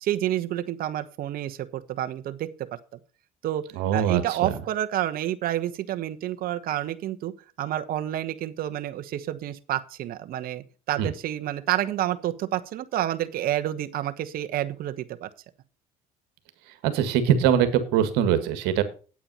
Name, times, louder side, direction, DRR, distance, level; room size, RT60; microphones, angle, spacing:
voice 1, 0.0-2.7 3.4-3.6 3.9-7.3 7.6-15.3, right 12 dB, 60° right, 9 dB, 1.1 m, -29 dB
voice 2, 3.7-4.5 11.0-11.1 16.8-18.8, right 9 dB, 80° right, 10 dB, 1.8 m, -22 dB
8.8 x 8.8 x 5.4 m, 0.36 s
supercardioid pair, 85°, 17 cm